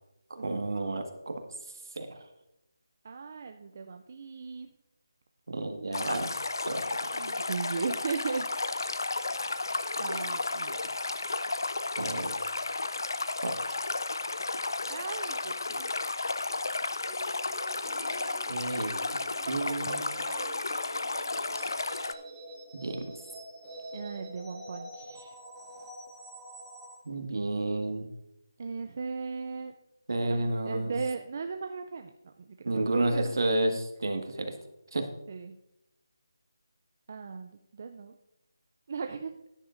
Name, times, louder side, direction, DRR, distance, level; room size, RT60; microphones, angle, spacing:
voice 1, 0.3-1.4 1.9-2.2 5.5-6.3 6.6-7.2 12.0-12.3 13.4-13.5 18.5-18.9 19.5-20.0 22.7-23.2 27.0-28.1 30.1-30.9 32.6-34.5 34.9-35.0, right 2 dB, 65° right, 5 dB, 1.6 m, -31 dB
voice 2, 3.0-4.7 6.1-6.2 7.1-8.8 10.0-10.8 14.9-15.9 19.7-20.6 23.9-25.3 28.6-29.7 30.3-30.4 30.6-32.1 32.6-33.3 35.3-35.5 37.1-38.1 38.9-39.3, right 5 dB, 30° right, 6 dB, 0.4 m, -37 dB
Stream, 5.9-22.1, left 3 dB, 70° left, 0.5 m, -33 dB
reversed melody, 17.1-27.0, right 1 dB, 5° right, 0.8 m, -47 dB
13.5 x 10.0 x 2.5 m, 0.87 s
figure-of-eight pair, 175°, 2 cm